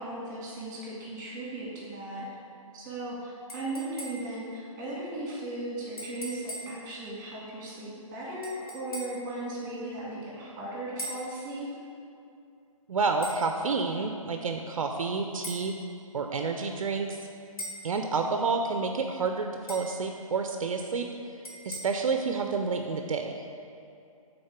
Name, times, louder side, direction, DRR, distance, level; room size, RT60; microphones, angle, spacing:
voice 1, 0.0-2.3 2.7-11.7, right 1 dB, 15° right, -5 dB, 1.7 m, -37 dB
sound 1, 3.5-4.4 6.0-6.8 8.4-9.3 11.0-11.3 13.2-13.4 15.4-15.7 17.6-17.9 19.7-20.0 21.4-21.8, equal, 85° left, 1.6 m, -40 dB
voice 2, 12.9-15.8 16.1-17.2 17.8-23.3, right 4 dB, 65° right, 4 dB, 0.5 m, -29 dB
6.4 x 4.1 x 5.8 m, 2.6 s
hypercardioid pair, 155°, 18 cm